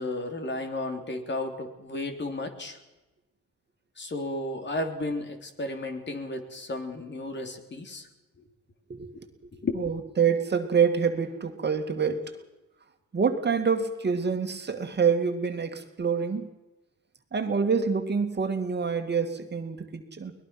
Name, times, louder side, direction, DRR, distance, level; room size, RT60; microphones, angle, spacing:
voice 1, 0.0-2.8 4.0-8.1 9.6-9.9, left 2 dB, 35° left, 5 dB, 3.5 m, -33 dB
voice 2, 8.9-9.3 9.8-12.3 13.1-16.5 17.3-20.3, right 6 dB, 35° right, 5 dB, 2.3 m, -26 dB
23.0 x 20.5 x 6.1 m, 1.1 s
cardioid pair, 90°, 30 cm